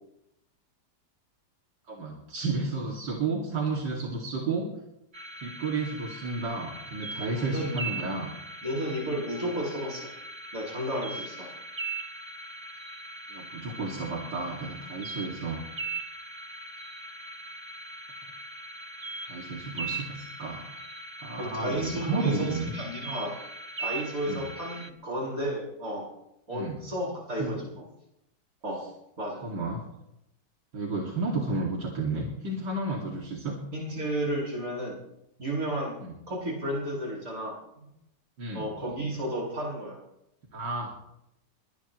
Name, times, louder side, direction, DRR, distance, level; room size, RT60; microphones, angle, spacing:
voice 1, 1.9-4.7 5.4-8.3 13.3-15.7 19.3-20.7 21.2-22.7 24.2-24.4 26.5-26.8 27.4-27.6 29.4-29.8 30.7-33.6 36.0-36.1 38.4-38.7 40.5-40.9, right 3 dB, 80° right, -2 dB, 3.0 m, -32 dB
sound 1, 5.1-24.9, right 3 dB, 30° right, 0.5 m, -40 dB
voice 2, 7.2-7.8 8.6-10.1 10.5-11.5 21.4-23.3 23.8-26.1 26.5-27.7 28.6-28.9 29.2-29.4 33.7-35.0 35.4-35.9 36.3-37.9 38.5-40.0, right 1 dB, 50° right, -4 dB, 8.3 m, -32 dB
23.0 x 19.5 x 3.1 m, 0.83 s
omnidirectional pair, 1.9 m